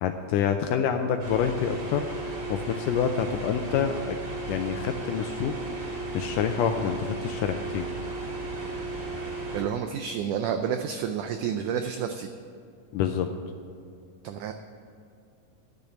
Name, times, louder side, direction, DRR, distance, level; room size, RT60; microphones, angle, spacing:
voice 1, 0.0-2.1 2.5-4.2 4.5-5.5 6.1-7.9 12.9-13.3, left 8 dB, 80° left, 6 dB, 1.9 m, -27 dB
sound 1, 1.2-9.6, right 2 dB, 40° right, 3.0 m, -35 dB
voice 2, 9.5-12.3 14.2-14.5, right 8 dB, 90° right, 7 dB, 1.8 m, -30 dB
10.0 x 6.9 x 9.2 m, 2.4 s
omnidirectional pair, 4.2 m